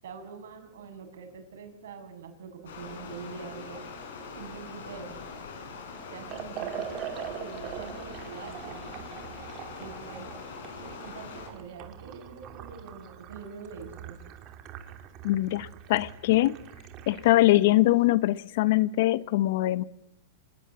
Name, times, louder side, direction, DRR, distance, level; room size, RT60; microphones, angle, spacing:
voice 1, 0.0-3.9 4.4-5.2 6.1-9.1 9.8-10.3 10.8-14.2, right 5 dB, 80° right, 6.8 m, -44 dB
Stream, 2.7-11.5, left 5 dB, 75° left, 7.6 m, -42 dB
Liquid, 6.2-17.5, right 9 dB, 35° right, 3.0 m, -42 dB
voice 2, 15.2-16.5 17.1-19.8, left 16 dB, 60° left, 0.9 m, -23 dB
27.0 x 20.0 x 8.2 m
hypercardioid pair, 145°, 0 cm